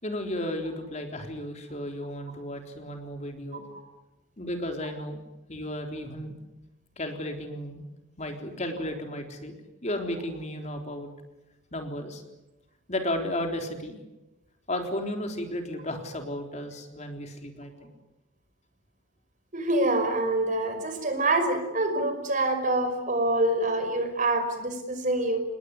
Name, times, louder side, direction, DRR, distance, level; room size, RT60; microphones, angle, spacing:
voice 1, 0.0-3.7 4.4-5.2 5.5-6.3 7.0-7.8 8.2-9.6 9.8-11.1 11.7-12.2 12.9-14.0 14.7-17.9, left 1 dB, 35° left, 4 dB, 3.8 m, -34 dB
voice 2, 19.5-25.4, right 2 dB, 40° right, 7 dB, 5.4 m, -26 dB
28.5 x 20.5 x 9.7 m, 0.98 s
head